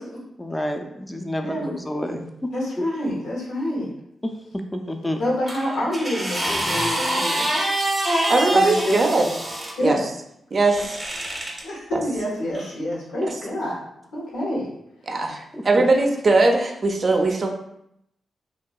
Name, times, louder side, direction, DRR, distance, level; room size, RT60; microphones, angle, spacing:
voice 1, 0.4-2.3 2.8-2.9 4.2-5.2 15.5-15.8, left 1 dB, 15° left, 5 dB, 0.4 m, -29 dB
voice 2, 1.4-1.8 2.5-3.9 5.2-7.7 8.5-9.2 9.8-10.1 11.6-13.8 14.1-14.7, left 1 dB, 85° left, -5 dB, 0.8 m, -27 dB
sound 1, 5.5-9.7 10.6-11.6 12.5-12.7, right 1 dB, 15° right, 0.7 m, -26 dB
voice 3, 8.3-9.3 9.8-10.0 10.5-11.0 15.1-17.5, right 3 dB, 50° right, 2 dB, 0.4 m, -19 dB
2.6 x 2.2 x 2.2 m, 0.78 s
supercardioid pair, 40°, 0 cm